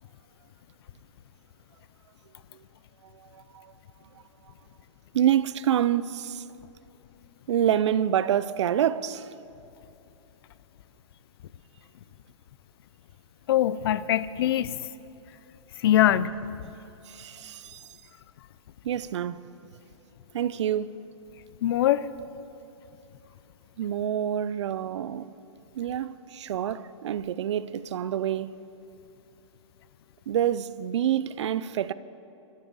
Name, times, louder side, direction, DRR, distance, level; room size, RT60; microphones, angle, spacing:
voice 1, 3.3-3.7 5.1-6.4 7.5-9.3 17.1-17.8 18.8-19.4 20.3-20.9 23.8-25.3 25.8-28.6 30.3-31.9, right 10 dB, 60° right, 0.6 m, -27 dB
voice 2, 13.5-14.8 15.8-16.4 16.6-16.7 21.6-22.1, left 12 dB, 50° left, 0.6 m, -23 dB
26.0 x 13.5 x 4.1 m
hypercardioid pair, 150°, 16 cm